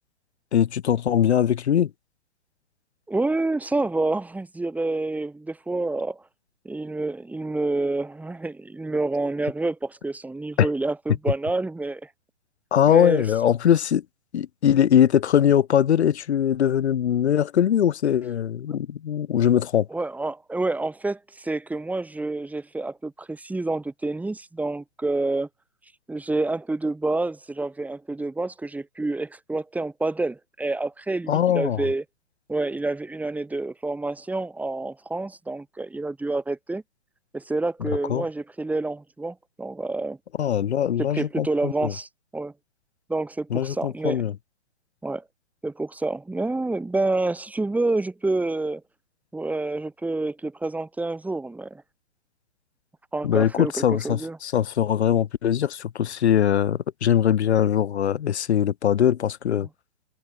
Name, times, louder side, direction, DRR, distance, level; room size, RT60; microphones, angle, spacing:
voice 1, 0.5-1.9 10.6-10.7 12.7-14.0 14.3-19.9 31.3-31.8 38.1-38.2 40.4-41.9 43.5-44.3 53.2-59.7, left 9 dB, 70° left, 1.1 m, -21 dB
voice 2, 3.1-6.2 6.6-12.1 12.9-13.2 19.9-25.5 26.1-32.0 32.5-36.8 37.3-40.2 41.1-42.5 43.1-44.3 45.0-45.2 45.6-48.8 49.3-51.8 53.1-53.7 54.0-54.4 59.6-59.7, right 2 dB, 5° right, 2.8 m, -28 dB
hypercardioid pair, 130°, 35 cm